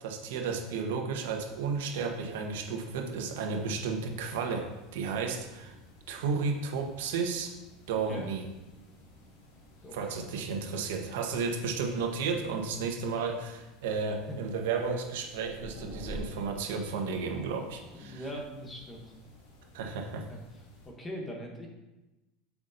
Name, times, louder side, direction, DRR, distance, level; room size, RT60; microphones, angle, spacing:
voice 1, 0.0-5.7 6.1-7.5 7.9-8.4 9.9-18.2 19.7-20.3, right 5 dB, 90° right, 3 dB, 1.1 m, -33 dB
sound 1, 1.2-20.9, equal, 80° left, 2.2 m, -51 dB
voice 2, 7.9-8.3 9.8-10.0 11.4-11.6 14.3-14.4 17.9-19.1 20.3-20.4 20.8-21.7, equal, 10° left, 1 dB, 0.9 m, -41 dB
8.2 x 5.9 x 2.6 m, 1.0 s
supercardioid pair, 175°, 0 cm